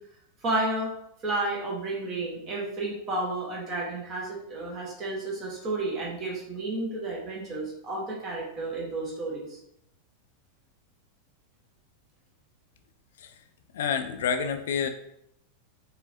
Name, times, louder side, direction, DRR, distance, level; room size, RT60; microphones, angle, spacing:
voice 1, 0.4-0.9 1.2-9.6, right 2 dB, 30° right, -3 dB, 1.2 m, -31 dB
voice 2, 13.7-14.9, left 7 dB, 60° left, 8 dB, 0.3 m, -28 dB
4.4 x 3.4 x 2.8 m, 0.75 s
figure-of-eight pair, 90°, 0 cm